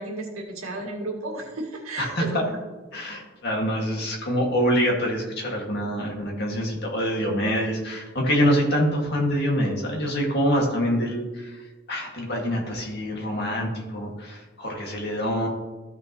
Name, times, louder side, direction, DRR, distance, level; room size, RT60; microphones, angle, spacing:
voice 1, 0.0-2.6, right 2 dB, 75° right, 0 dB, 1.9 m, -33 dB
voice 2, 2.0-2.5 2.9-11.6 11.9-15.5, equal, 50° left, -1 dB, 2.0 m, -25 dB
14.0 x 6.0 x 3.0 m, 1.2 s
head